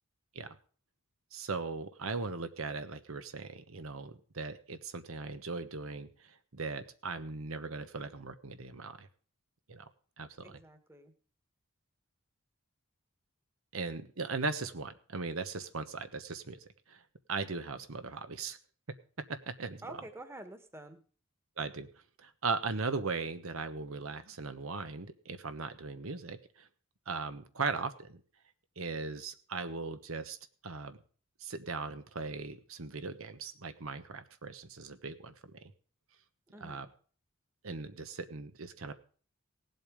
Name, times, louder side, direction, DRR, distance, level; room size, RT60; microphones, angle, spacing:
voice 1, 1.3-9.1 9.7-9.8 10.2-10.3 13.7-16.6 16.9-17.0 17.3-18.6 19.3-19.8 21.6-21.9 22.2-26.7 27.1-28.2 28.8-30.4 30.6-31.0 31.4-35.7 36.6-36.9 37.6-38.9, right 4 dB, 75° right, 10 dB, 1.1 m, -38 dB
voice 2, 10.4-11.1 19.8-21.0 36.5-36.9, right 1 dB, 10° right, 8 dB, 1.5 m, -48 dB
18.0 x 8.1 x 5.1 m, 0.42 s
head